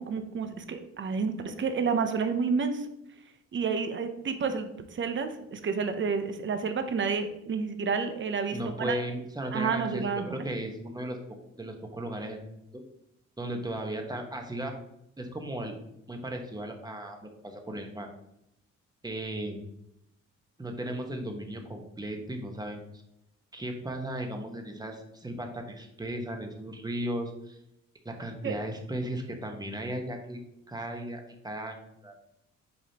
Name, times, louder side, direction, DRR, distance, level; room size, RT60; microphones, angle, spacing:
voice 1, 0.0-2.9 3.5-9.0 9.5-10.3 28.4-28.6, right 5 dB, 40° right, 8 dB, 0.8 m, -30 dB
voice 2, 8.5-11.2 11.6-12.5 12.7-12.8 13.4-14.7 15.2-15.7 16.1-18.1 19.0-19.6 20.6-22.9 23.5-27.6 28.0-30.4 30.7-32.2, right 1 dB, 15° right, 3 dB, 1.2 m, -36 dB
7.0 x 5.0 x 2.9 m, 0.81 s
cardioid pair, 90°, 30 cm